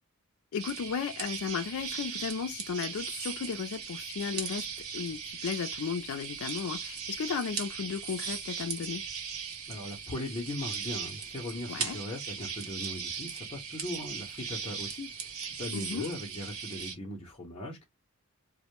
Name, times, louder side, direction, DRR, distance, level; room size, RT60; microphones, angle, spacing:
voice 1, 0.5-4.7 4.9-9.0 11.7-12.0 15.7-16.1, left 6 dB, 75° left, 0.4 m, -35 dB
sound 1, 0.6-16.9, right 6 dB, 80° right, 0.8 m, -38 dB
voice 2, 9.7-17.8, left 1 dB, 25° left, 0.6 m, -39 dB
2.1 x 2.0 x 2.9 m
head